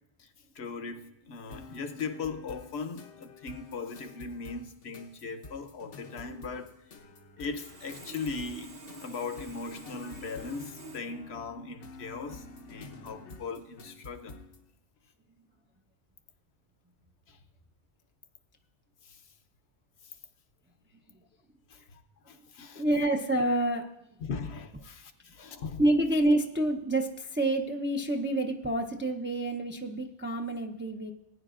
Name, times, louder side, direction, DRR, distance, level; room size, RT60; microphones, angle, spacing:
voice 1, 0.6-6.7 7.4-8.7 9.0-14.4 17.3-17.4 19.0-19.2 21.7-22.0 22.3-23.1 24.2-25.8, left 4 dB, 70° left, 8 dB, 1.0 m, -39 dB
sound 1, 1.5-14.6, left 3 dB, 90° left, 1.3 m, -49 dB
Sawing, 7.4-11.0, right 2 dB, 60° right, 1.2 m, -48 dB
voice 2, 22.8-23.8 25.8-31.1, right 1 dB, 15° right, 3 dB, 0.4 m, -28 dB
19.0 x 9.8 x 2.4 m, 0.84 s
omnidirectional pair, 1.2 m